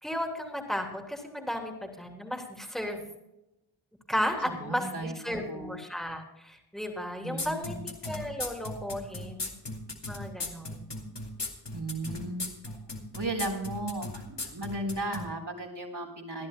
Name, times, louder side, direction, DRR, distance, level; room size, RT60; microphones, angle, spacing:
voice 1, 0.0-3.0 4.1-9.5 10.1-10.9 12.7-12.8, equal, ahead, 1 dB, 3.2 m, -34 dB
voice 2, 4.4-5.8 7.2-7.8 11.7-12.4 13.1-16.5, right 2 dB, 55° right, 2 dB, 4.0 m, -35 dB
sound 1, 7.4-15.2, left 2 dB, 60° left, 2.4 m, -36 dB
27.0 x 11.0 x 2.2 m, 0.89 s
wide cardioid pair, 60°, 47 cm